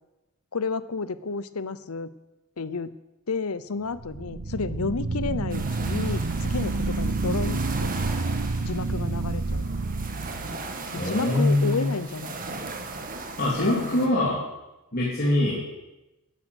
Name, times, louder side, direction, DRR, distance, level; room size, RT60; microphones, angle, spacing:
voice 1, 0.5-2.1 2.6-2.9 3.3-7.9 8.7-9.7 10.9-12.4 13.6-14.1, left 4 dB, 85° left, 16 dB, 0.8 m, -31 dB
sound 1, 3.9-11.0, right 3 dB, 60° right, 0.8 m, -29 dB
sound 2, 5.5-14.1, right 3 dB, 40° right, 1.8 m, -38 dB
voice 2, 11.0-11.9 13.4-14.4 14.9-15.6, left 1 dB, 45° left, -7 dB, 3.4 m, -23 dB
12.5 x 10.5 x 8.1 m, 1.0 s
head